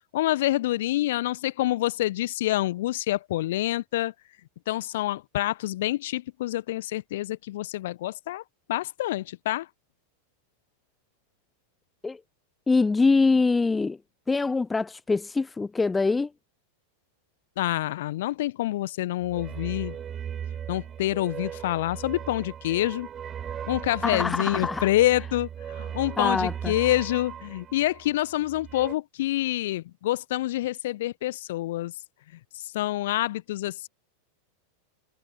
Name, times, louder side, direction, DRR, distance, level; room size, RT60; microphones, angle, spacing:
voice 1, 0.1-4.1 4.7-8.4 8.7-9.7 17.6-20.0 20.7-23.1 23.7-31.9 32.5-33.9, left 15 dB, 55° left, 1.3 m, -27 dB
voice 2, 12.7-14.0 14.3-16.3 24.0-24.9 26.2-26.7, left 3 dB, 10° left, 0.6 m, -24 dB
sound 1, 19.2-28.9, right 9 dB, 25° right, 2.8 m, -38 dB
figure-of-eight pair, 90°, 0 cm